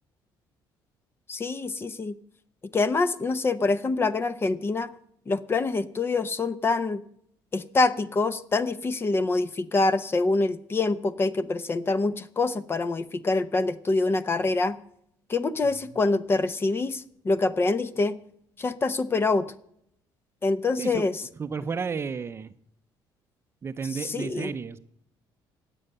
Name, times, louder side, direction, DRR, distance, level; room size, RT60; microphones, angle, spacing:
voice 1, 1.3-2.2 2.7-4.9 5.3-7.0 7.5-14.8 15.3-18.2 18.6-19.5 20.4-21.1 24.0-24.5, left 3 dB, 25° left, 14 dB, 0.8 m, -25 dB
voice 2, 21.4-22.5 23.6-24.8, right 5 dB, 30° right, 12 dB, 0.6 m, -32 dB
18.5 x 7.8 x 6.7 m, 0.71 s
cardioid pair, 115°, 9 cm